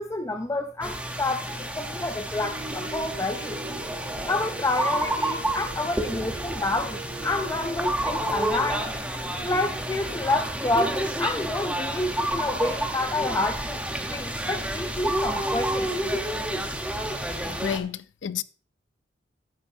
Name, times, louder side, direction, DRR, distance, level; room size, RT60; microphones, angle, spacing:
voice 1, 0.0-3.6 4.3-9.0 9.4-13.8 14.1-15.9, left 2 dB, 15° left, 0.4 m, -29 dB
sound 1, 0.8-17.8, right 1 dB, 5° right, 0.9 m, -30 dB
sound 2, 2.4-7.7, right 4 dB, 70° right, 5.4 m, -41 dB
voice 2, 17.5-18.4, left 8 dB, 80° left, 0.4 m, -31 dB
10.0 x 8.8 x 2.7 m
head